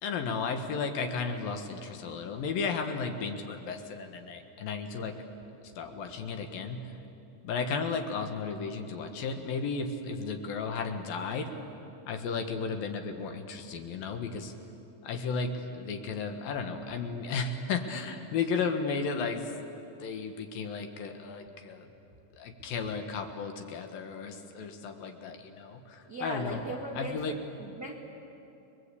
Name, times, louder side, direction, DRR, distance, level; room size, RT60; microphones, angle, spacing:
voice 1, 0.0-5.1 5.8-7.0 7.4-11.5 12.1-14.5 15.0-21.9 22.4-26.6 26.9-27.3, left 5 dB, 65° left, 5 dB, 3.0 m, -34 dB
voice 2, 26.1-27.9, right 1 dB, 45° right, 0 dB, 1.2 m, -38 dB
29.5 x 22.0 x 8.4 m, 2.8 s
omnidirectional pair, 4.7 m